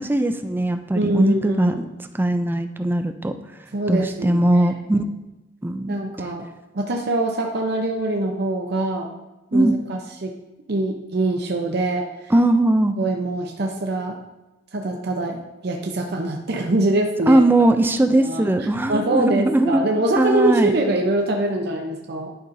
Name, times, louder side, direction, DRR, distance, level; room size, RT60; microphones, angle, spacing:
voice 1, 0.0-1.9 2.1-3.3 3.9-5.0 5.6-6.3 9.5-9.7 12.3-12.9 17.3-19.8 20.2-20.8, right 1 dB, 10° right, 8 dB, 0.3 m, -19 dB
voice 2, 0.9-1.8 3.7-4.7 5.0-5.1 5.9-6.4 6.7-9.1 9.5-10.3 10.7-12.1 13.0-14.2 14.7-15.4 15.6-17.7 18.2-22.3, right 2 dB, 60° right, 1 dB, 0.6 m, -24 dB
11.0 x 5.3 x 2.6 m, 1.0 s
head